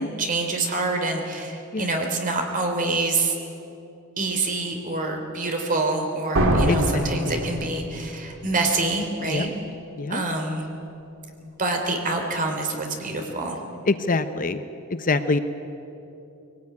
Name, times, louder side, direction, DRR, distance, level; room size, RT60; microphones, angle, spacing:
voice 1, 0.0-3.4 4.2-9.5 10.1-10.6 11.4-13.6, right 2 dB, 40° right, 3 dB, 3.2 m, -26 dB
sound 1, 6.3-8.2, right 1 dB, 65° right, 2.1 m, -23 dB
voice 2, 6.7-7.3 9.3-9.5 10.0-10.2 13.9-14.6 14.9-15.4, left 3 dB, 40° left, 11 dB, 0.8 m, -25 dB
22.0 x 18.0 x 9.5 m, 2.9 s
head